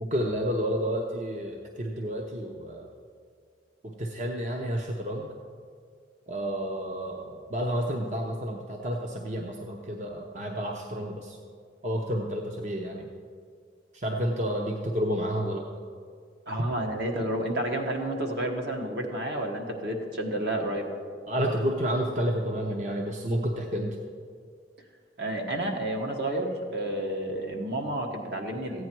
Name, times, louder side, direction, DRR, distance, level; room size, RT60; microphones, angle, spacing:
voice 1, 0.0-2.9 3.8-5.3 6.3-11.4 11.8-13.1 13.9-15.7 21.3-24.0, equal, 40° right, 1 dB, 0.7 m, -30 dB
voice 2, 16.5-20.9 25.2-28.8, right 1 dB, 65° right, 2 dB, 1.4 m, -30 dB
14.5 x 9.4 x 4.6 m, 2.1 s
head